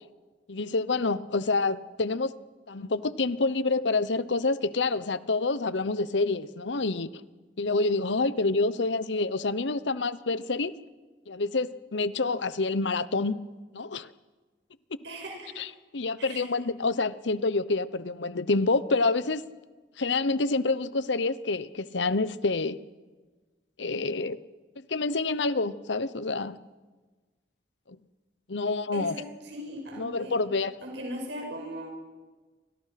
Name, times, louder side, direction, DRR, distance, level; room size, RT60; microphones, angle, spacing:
voice 1, 0.5-2.3 2.7-7.1 7.6-10.7 11.3-13.4 13.7-14.1 15.6-15.7 15.9-19.4 20.0-22.8 23.8-24.4 24.9-26.6 27.9-28.0 28.5-29.2 30.0-30.8, left 3 dB, 85° left, 16 dB, 0.9 m, -27 dB
voice 2, 15.0-15.6 16.2-16.4 28.9-30.4 30.8-31.9, equal, 80° right, 1 dB, 6.9 m, -39 dB
29.5 x 25.5 x 5.9 m, 1.3 s
head